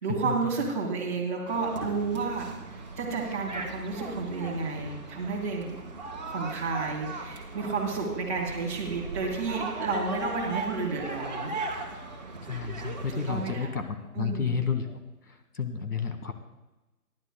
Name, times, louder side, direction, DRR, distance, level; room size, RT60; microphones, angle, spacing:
voice 1, 0.0-2.5 3.0-5.8 6.2-11.5 13.1-13.7 14.1-14.6, right 4 dB, 10° right, -7 dB, 1.3 m, -31 dB
sound 1, 1.5-13.5, right 3 dB, 25° right, 1.3 m, -38 dB
voice 2, 12.5-13.8 14.2-14.8 15.6-16.3, left 6 dB, 65° left, 6 dB, 2.0 m, -30 dB
26.0 x 11.0 x 2.2 m, 1.0 s
figure-of-eight pair, 165°, 48 cm